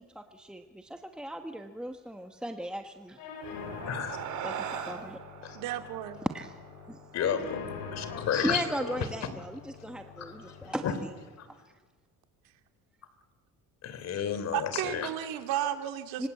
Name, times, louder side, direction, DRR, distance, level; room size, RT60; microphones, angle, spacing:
voice 1, 0.1-3.2 4.4-4.5 4.9-5.2 6.3-6.5 6.9-7.0 8.3-11.1 16.2-16.3, right 1 dB, 5° right, 5 dB, 1.2 m, -37 dB
sound 1, 3.2-11.2, left 5 dB, 80° left, 6.6 m, -44 dB
sound 2, 3.2-8.0, right 8 dB, 55° right, 3.0 m, -41 dB
voice 2, 5.5-6.2 14.5-16.3, right 12 dB, 80° right, 7 dB, 2.7 m, -33 dB
voice 3, 7.1-7.6 7.9-9.1 10.2-10.5 10.8-10.9 11.4-11.5 13.8-15.1, left 8 dB, 45° left, 11 dB, 3.5 m, -32 dB
26.0 x 26.0 x 8.4 m, 1.3 s
cardioid pair, 150°, 35 cm